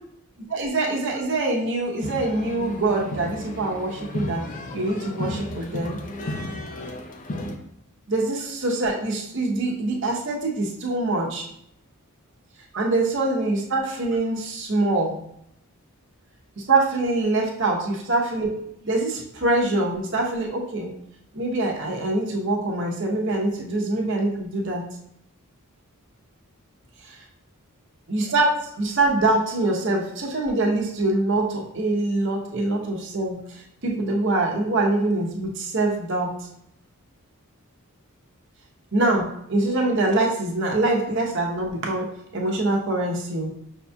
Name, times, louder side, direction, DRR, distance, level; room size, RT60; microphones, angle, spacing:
voice 1, 0.5-6.0 8.1-11.5 12.7-15.2 16.6-20.9 21.3-24.9 27.0-27.2 28.1-36.3 38.9-42.1 42.3-43.5, right 2 dB, 60° right, -1 dB, 0.9 m, -24 dB
sound 1, 2.0-7.6, left 1 dB, 35° left, 0.4 m, -33 dB
5.9 x 2.8 x 2.2 m, 0.75 s
head